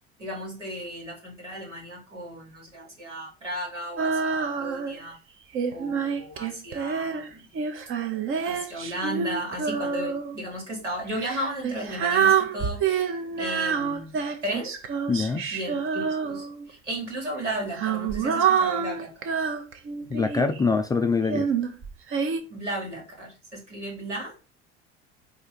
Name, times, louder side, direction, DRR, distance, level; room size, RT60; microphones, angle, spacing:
voice 1, 0.2-5.2 5.7-7.5 8.4-13.1 13.4-14.8 15.5-19.4 22.5-24.3, right 1 dB, 90° right, 1.7 m, -35 dB
Female singing, 4.0-5.0 5.5-10.4 11.1-16.7 17.5-20.6 21.3-22.4, right 6 dB, 35° right, 0.8 m, -27 dB
voice 2, 15.1-15.5 20.1-21.5, left 4 dB, 10° left, 0.3 m, -24 dB
4.5 x 2.7 x 4.3 m
figure-of-eight pair, 65°, 35 cm